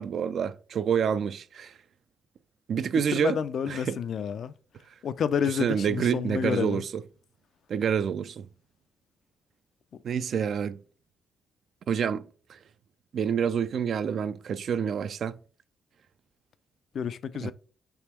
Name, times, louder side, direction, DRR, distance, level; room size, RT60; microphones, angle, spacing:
voice 1, 0.0-1.7 2.7-3.4 3.7-4.0 5.5-7.0 7.7-8.4 10.0-10.8 11.9-12.2 12.5-12.6 13.1-15.4 17.4-17.5, right 7 dB, 60° right, 0.3 m, -28 dB
voice 2, 3.1-4.5 5.0-6.8 16.9-17.5, left 7 dB, 60° left, 0.3 m, -29 dB
3.5 x 2.9 x 4.4 m
cardioid pair, 90°, 0 cm